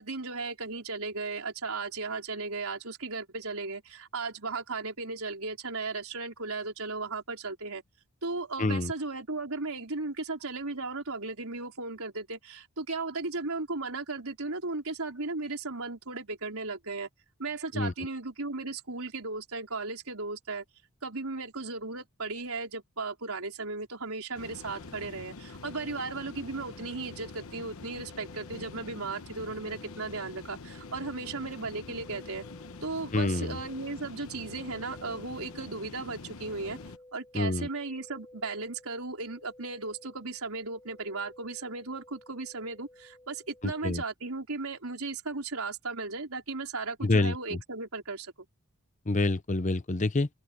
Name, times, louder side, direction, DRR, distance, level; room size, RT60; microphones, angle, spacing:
voice 1, 0.0-7.8 8.2-17.1 17.4-20.6 21.0-32.4 32.8-36.8 37.1-48.3, right 3 dB, 75° right, 4.1 m, -36 dB
voice 2, 8.6-8.9 17.7-17.9 33.1-33.6 37.3-37.7 43.6-44.0 47.0-47.6 49.1-50.3, left 2 dB, 35° left, 0.7 m, -27 dB
sound 1, 24.3-37.0, left 3 dB, 75° left, 1.0 m, -45 dB
sound 2, 25.3-43.9, left 1 dB, 15° left, 7.2 m, -55 dB
head